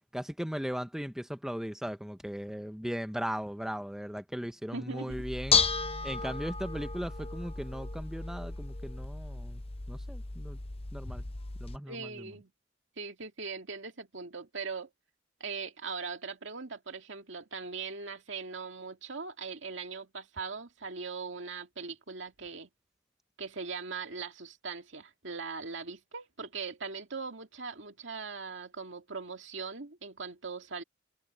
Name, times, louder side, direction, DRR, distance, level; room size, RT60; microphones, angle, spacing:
voice 1, 0.1-5.6 6.0-9.6 9.9-10.6 10.9-11.2 11.6-12.3, equal, 5° right, 0.7 m, -37 dB
voice 2, 4.7-5.2 11.9-12.5 13.0-14.9 15.4-22.7 23.4-30.8, right 4 dB, 65° right, 2.3 m, -40 dB
Bell / Dishes pots and pans, 5.1-11.8, left 5 dB, 30° left, 0.7 m, -33 dB
head